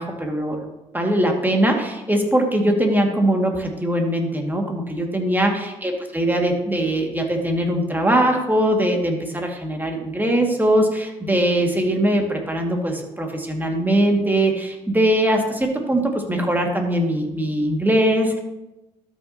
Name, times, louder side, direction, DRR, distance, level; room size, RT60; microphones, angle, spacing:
voice 1, 0.0-18.4, right 1 dB, 10° right, 2 dB, 2.2 m, -21 dB
13.0 x 6.3 x 3.0 m, 0.96 s
hypercardioid pair, 50°, 17 cm